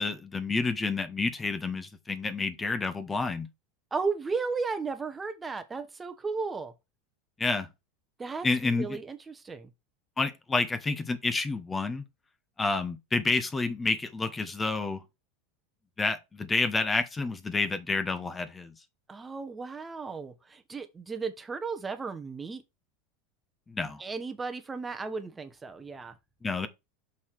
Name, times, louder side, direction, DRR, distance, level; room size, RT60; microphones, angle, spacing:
voice 1, 0.0-3.5 7.4-7.7 8.4-9.0 10.2-12.0 12.6-15.0 16.0-18.7 23.7-24.0 26.4-26.7, left 3 dB, 15° left, 1.0 m, -29 dB
voice 2, 3.9-6.7 8.2-9.7 19.1-22.6 24.0-26.1, right 4 dB, 15° right, 1.1 m, -35 dB
6.5 x 5.6 x 4.6 m
supercardioid pair, 135°, 0 cm